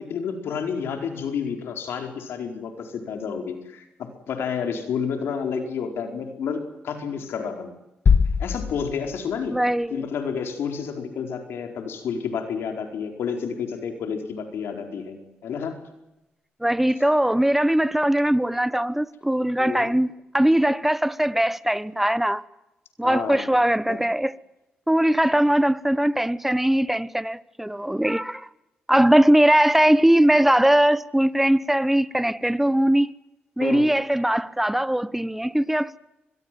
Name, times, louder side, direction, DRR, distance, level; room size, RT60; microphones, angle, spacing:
voice 1, 0.0-7.7 8.4-9.6 9.9-15.8 19.6-19.9 23.0-23.5 23.9-24.1 33.6-34.0, left 6 dB, 85° left, 4.6 m, -30 dB
sound 1, 8.1-9.9, left 6 dB, 55° left, 1.8 m, -22 dB
voice 2, 9.5-10.1 16.6-22.4 23.0-24.4 24.9-28.5 28.9-33.1 33.6-36.0, right 1 dB, 5° right, 1.1 m, -20 dB
25.0 x 21.5 x 7.7 m
cardioid pair, 80°, 4 cm